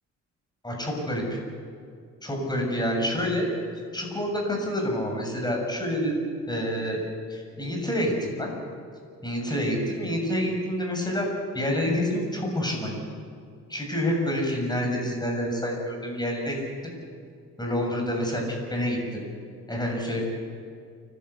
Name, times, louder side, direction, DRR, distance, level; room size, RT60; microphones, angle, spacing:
voice 1, 0.6-1.4 2.2-3.5 3.9-6.2 6.5-7.0 7.3-8.5 9.2-11.3 11.5-13.0 13.7-16.6 17.6-18.4 18.7-19.2 19.7-20.2, equal, 15° left, 0 dB, 7.1 m, -27 dB
29.5 x 12.5 x 8.4 m, 2.3 s
cardioid pair, 90°, 30 cm